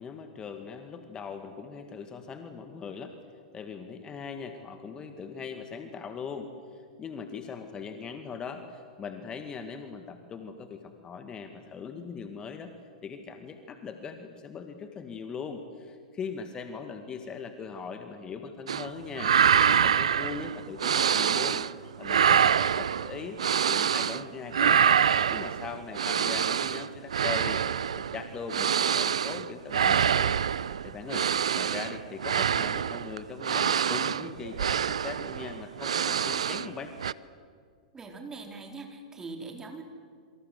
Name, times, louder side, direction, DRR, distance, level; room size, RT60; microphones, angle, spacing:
voice 1, 0.0-3.2 3.5-12.7 13.0-21.6 22.0-24.8 25.3-27.6 27.9-30.4 30.8-31.3 31.5-36.9, left 5 dB, 25° left, 7 dB, 2.1 m, -40 dB
sound 1, 18.7-18.9 19.1-21.7 22.0-24.2 24.5-36.7 37.0-37.1, right 8 dB, 70° right, 0.7 m, -26 dB
voice 2, 37.9-39.8, right 3 dB, 15° right, 3 dB, 4.4 m, -41 dB
27.5 x 25.0 x 8.1 m, 2.1 s
figure-of-eight pair, 100°, 3 cm